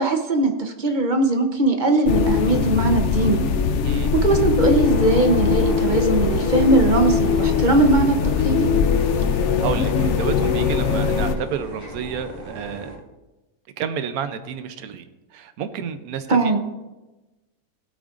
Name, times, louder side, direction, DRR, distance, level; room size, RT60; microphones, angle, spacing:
voice 1, 0.0-3.4 4.1-8.7 16.3-16.6, right 2 dB, 40° right, 5 dB, 0.8 m, -20 dB
sound 1, 2.1-11.4, left 6 dB, 60° left, 0.8 m, -21 dB
sound 2, 4.8-13.0, equal, 25° left, 3.0 m, -36 dB
voice 2, 9.4-13.0 13.8-15.0 15.3-16.6, right 7 dB, 75° right, 10 dB, 1.2 m, -30 dB
17.0 x 8.4 x 2.5 m, 1.1 s
omnidirectional pair, 1.6 m